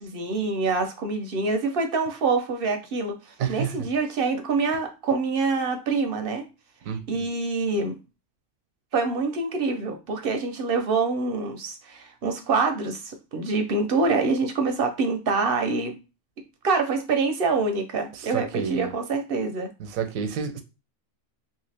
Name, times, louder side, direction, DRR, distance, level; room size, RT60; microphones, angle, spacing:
voice 1, 0.0-6.5 7.1-7.9 8.9-15.9 16.6-19.7, right 4 dB, 60° right, 0.6 m, -26 dB
voice 2, 3.4-3.9 6.9-7.2 18.1-18.9 19.8-20.6, right 7 dB, 90° right, 1.0 m, -30 dB
2.9 x 2.7 x 3.2 m
omnidirectional pair, 1.4 m